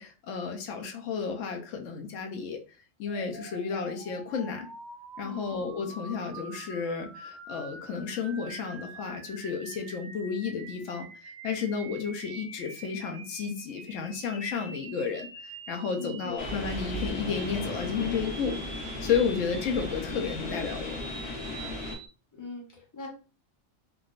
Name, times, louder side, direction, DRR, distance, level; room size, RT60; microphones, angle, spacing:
voice 1, 0.0-2.6 3.0-4.7 5.2-18.6 19.0-21.0, left 6 dB, 80° left, 3 dB, 0.9 m, -32 dB
sound 1, 3.0-22.1, right 3 dB, 45° right, 0.6 m, -46 dB
sound 2, 16.4-21.9, left 2 dB, 55° left, 1.6 m, -36 dB
voice 2, 22.3-23.1, left 2 dB, 15° left, -1 dB, 0.8 m, -41 dB
3.5 x 2.3 x 2.4 m, 0.34 s
omnidirectional pair, 1.3 m